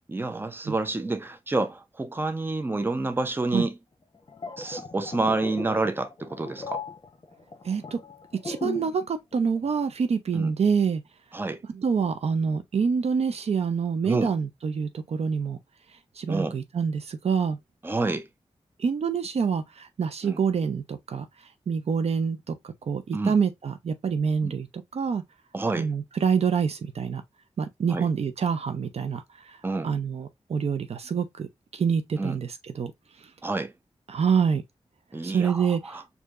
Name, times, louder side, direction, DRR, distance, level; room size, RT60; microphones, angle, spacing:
voice 1, 0.1-3.8 4.6-6.8 10.3-10.5 11.3-11.6 14.0-14.3 16.3-16.6 17.8-18.3 20.2-20.4 23.1-23.4 24.4-24.5 25.5-25.9 27.9-28.1 29.6-29.9 32.2-32.4 33.4-33.7 35.1-36.0, right 2 dB, 20° right, 0.6 m, -28 dB
sound 1, 4.1-9.1 9.3-9.6, left 3 dB, 40° left, 0.9 m, -37 dB
voice 2, 7.6-8.0 8.4-11.0 11.7-15.6 16.2-17.6 18.8-21.2 21.7-24.7 24.9-25.2 25.8-27.2 27.6-29.2 29.8-31.5 31.7-32.5 32.7-32.9 34.1-34.6 35.2-35.8, right 6 dB, 65° right, 0.5 m, -26 dB
4.6 x 2.7 x 2.4 m
wide cardioid pair, 80°, 11 cm